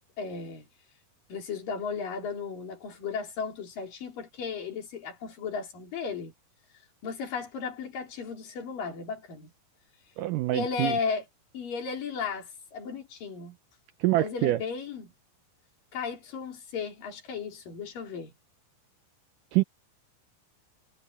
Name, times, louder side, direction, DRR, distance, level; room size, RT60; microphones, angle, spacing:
voice 1, 0.2-0.7 1.3-6.3 7.0-9.5 10.5-11.2 11.5-13.6 14.1-15.1 15.9-18.3, left 5 dB, 60° left, 5.1 m, -35 dB
voice 2, 10.2-11.0 14.0-14.6 19.5-19.6, right 17 dB, 85° right, 1.8 m, -25 dB
omnidirectional pair, 4.5 m